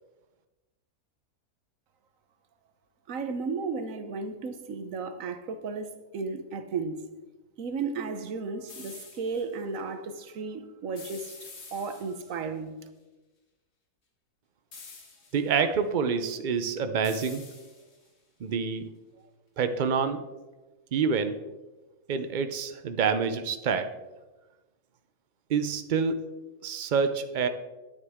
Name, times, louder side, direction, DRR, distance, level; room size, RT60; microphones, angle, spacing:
voice 1, 3.1-7.1 7.6-11.4 11.7-12.8, right 4 dB, 65° right, 1.2 m, -34 dB
sound 1, 8.7-9.4 11.0-12.4 14.7-15.5 17.0-18.1, left 4 dB, 45° left, 1.5 m, -47 dB
voice 2, 15.3-17.5 18.4-18.9 19.6-20.2 20.9-21.4 22.1-24.0 25.5-26.2 26.6-27.5, right 6 dB, 90° right, 0.4 m, -27 dB
10.5 x 9.7 x 3.6 m
omnidirectional pair, 1.6 m